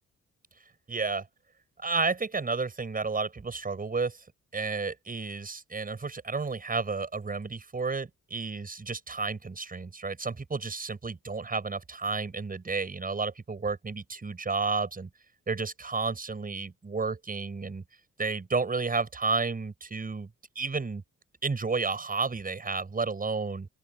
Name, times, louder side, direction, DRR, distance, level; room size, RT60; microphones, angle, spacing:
voice 1, 0.9-1.2 1.8-4.2 4.5-15.1 15.5-17.8 18.2-20.3 20.6-21.0 21.4-23.7, right 4 dB, 30° right, 7.3 m, -31 dB
open air
cardioid pair, 105°, 30 cm